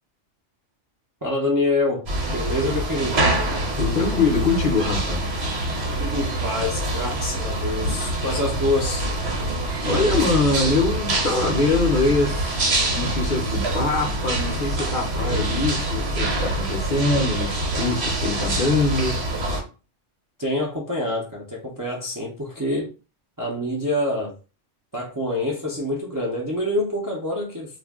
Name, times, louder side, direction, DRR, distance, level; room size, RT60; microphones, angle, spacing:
voice 1, 1.2-2.1 2.3-3.3 6.0-9.1 20.4-22.9 23.4-24.3 24.9-27.8, left 1 dB, 30° right, 0.4 m, -26 dB
sound 1, 2.1-19.6, right 1 dB, 60° right, 1.1 m, -25 dB
voice 2, 3.8-5.2 9.8-19.2, left 3 dB, 50° left, 0.7 m, -23 dB
2.4 x 2.2 x 3.4 m
omnidirectional pair, 1.2 m